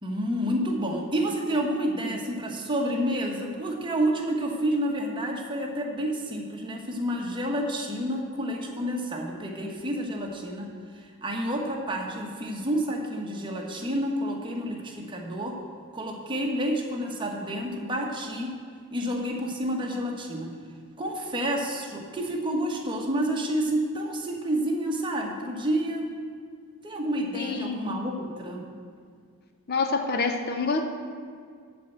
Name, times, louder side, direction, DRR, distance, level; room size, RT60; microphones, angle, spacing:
voice 1, 0.0-10.7 11.2-15.6 15.9-18.5 18.9-20.5 21.0-26.1 26.8-28.6, equal, 20° right, 0 dB, 1.1 m, -29 dB
voice 2, 27.3-28.1 29.7-30.8, left 4 dB, 45° left, 6 dB, 0.6 m, -28 dB
12.5 x 4.3 x 7.8 m, 2.1 s
head